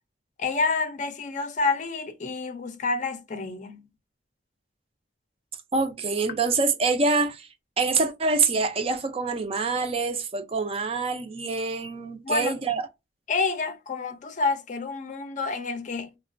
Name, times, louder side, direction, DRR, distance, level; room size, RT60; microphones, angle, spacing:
voice 1, 0.4-3.8 12.2-12.6 13.3-16.1, left 4 dB, 45° left, 0.5 m, -28 dB
voice 2, 5.7-7.5 7.8-12.8, right 4 dB, 35° right, 0.4 m, -25 dB
3.0 x 2.1 x 2.4 m
head